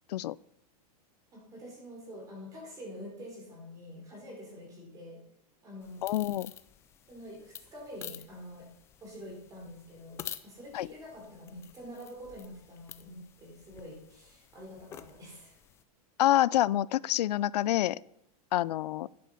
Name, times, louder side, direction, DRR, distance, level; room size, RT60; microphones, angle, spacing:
voice 1, 1.3-5.2 5.6-6.0 7.1-8.7 9.0-15.6, equal, 15° right, -1 dB, 4.2 m, -46 dB
sound 1, 5.8-15.8, left 10 dB, 15° left, 0.3 m, -49 dB
voice 2, 6.0-6.5 10.7-10.9 16.2-18.0 18.5-19.1, left 14 dB, 90° left, 22 dB, 0.4 m, -27 dB
10.5 x 10.5 x 5.6 m, 0.78 s
supercardioid pair, 165°, 20 cm